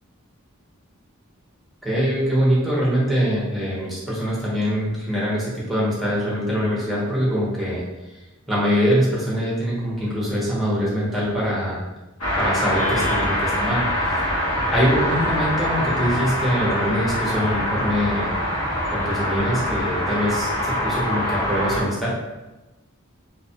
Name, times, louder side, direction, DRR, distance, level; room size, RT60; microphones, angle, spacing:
voice 1, 1.8-7.8 8.5-11.8 12.4-14.2 14.7-18.4 18.9-22.1, equal, ahead, -7 dB, 0.7 m, -23 dB
sound 1, 12.2-21.8, equal, 85° left, 0.8 m, -24 dB
2.3 x 2.1 x 2.6 m, 1.1 s
head